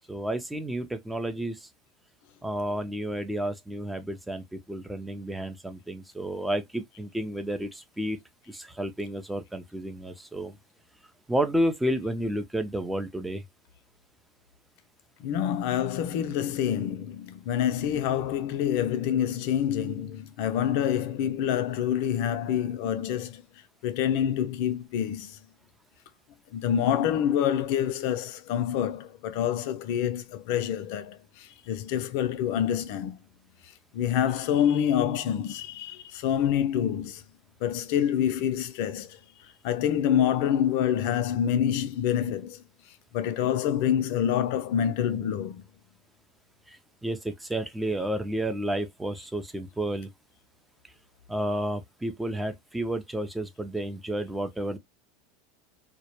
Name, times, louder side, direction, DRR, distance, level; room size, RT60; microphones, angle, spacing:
voice 1, 0.1-1.7 2.4-8.2 8.5-10.5 11.3-13.4 46.7-50.1 51.3-54.8, right 1 dB, 5° right, 0.4 m, -31 dB
voice 2, 15.2-23.4 23.8-25.3 26.5-31.2 31.7-33.2 33.9-37.2 37.6-39.1 39.6-42.6 43.1-45.6, left 9 dB, 65° left, 0.4 m, -27 dB
2.2 x 2.0 x 2.8 m
hypercardioid pair, 100°, 0 cm